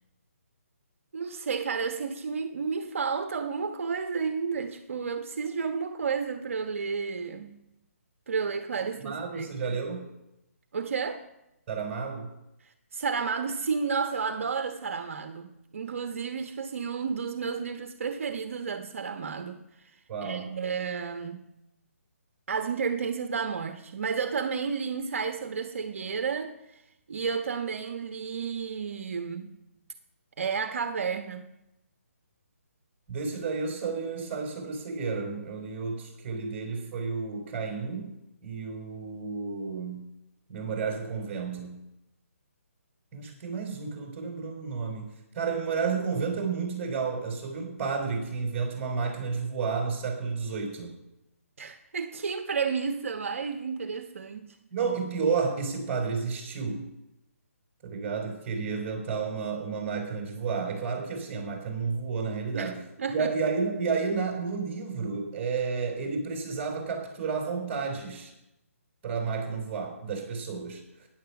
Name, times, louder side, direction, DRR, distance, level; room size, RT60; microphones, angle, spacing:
voice 1, 1.1-7.6 8.3-9.8 10.7-11.2 12.6-15.5 15.7-21.5 22.5-26.8 27.1-29.5 30.4-31.5 51.6-54.6 62.5-62.7 63.0-63.3, right 5 dB, 60° right, 1.1 m, -32 dB
voice 2, 9.0-10.0 11.7-12.3 20.1-20.5 33.1-38.1 38.4-40.0 40.5-41.8 43.1-50.9 54.7-56.9 57.8-62.8 63.1-68.3 69.0-71.1, right 5 dB, 20° right, 4.4 m, -31 dB
14.5 x 9.8 x 5.9 m
hypercardioid pair, 160°, 8 cm